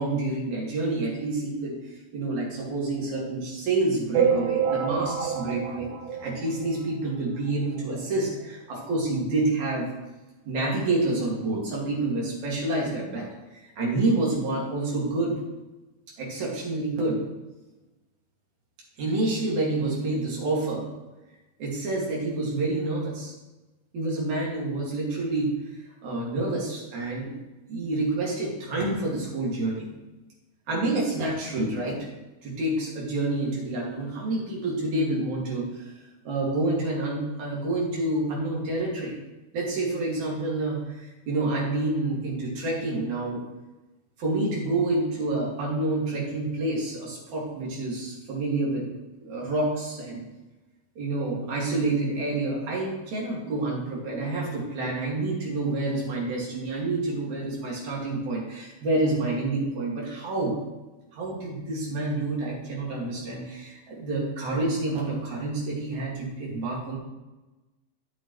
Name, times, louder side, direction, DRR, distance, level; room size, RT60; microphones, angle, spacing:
voice 1, 0.0-1.8 2.1-5.9 6.2-9.9 10.5-13.3 13.5-15.4 16.2-17.2 19.0-20.9 21.6-23.3 23.9-25.5 26.0-27.4 27.7-29.9 30.7-32.0 32.4-35.9 36.2-39.2 39.5-43.4 44.2-48.9 49.2-50.2 51.0-60.6 61.1-67.0, right 2 dB, 60° right, -4 dB, 3.7 m, -28 dB
sound 1, 4.1-7.0 7.5-7.6 7.8-7.9 8.2-8.3 9.2-9.3 9.7-9.8, right 7 dB, 85° right, 2.5 m, -27 dB
12.0 x 7.9 x 3.2 m, 1.1 s
omnidirectional pair, 3.8 m